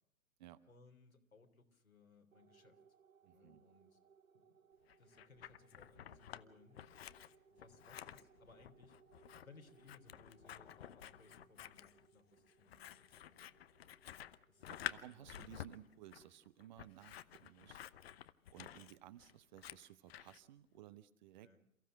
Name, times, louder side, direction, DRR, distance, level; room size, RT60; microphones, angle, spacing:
voice 1, 0.7-2.8 3.3-4.0 4.3-4.4 5.0-6.8 7.5-9.0 9.4-13.5 14.5-14.6 15.0-15.5 21.4-21.6, left 4 dB, 80° left, 4 dB, 3.6 m, -64 dB
sound 1, 2.3-17.1, right 6 dB, 75° right, 1.1 m, -70 dB
voice 2, 3.2-3.6 14.7-17.8 18.5-21.5, right 13 dB, 35° right, 14 dB, 1.0 m, -57 dB
Scissors, 4.9-6.4 6.7-20.4, left 10 dB, 45° left, 0.9 m, -51 dB
28.5 x 15.0 x 6.3 m, 0.75 s
figure-of-eight pair, 115°, 41 cm